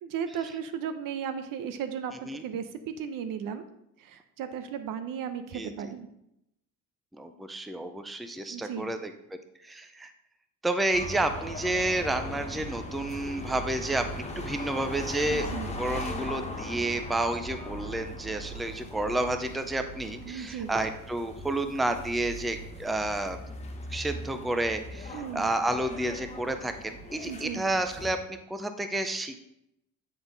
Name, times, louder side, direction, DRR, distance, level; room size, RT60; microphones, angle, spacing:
voice 1, 0.0-3.7 4.0-6.1 8.5-8.9 15.3-15.8 20.2-20.7 25.1-25.5 27.2-27.6, right 7 dB, 70° right, 9 dB, 0.8 m, -35 dB
voice 2, 7.1-9.1 9.6-10.1 10.6-23.4 23.9-29.4, right 1 dB, ahead, 8 dB, 0.4 m, -30 dB
sound 1, 10.9-28.1, left 1 dB, 20° left, 1.1 m, -39 dB
9.2 x 4.1 x 3.9 m, 0.80 s
cardioid pair, 95°, 34 cm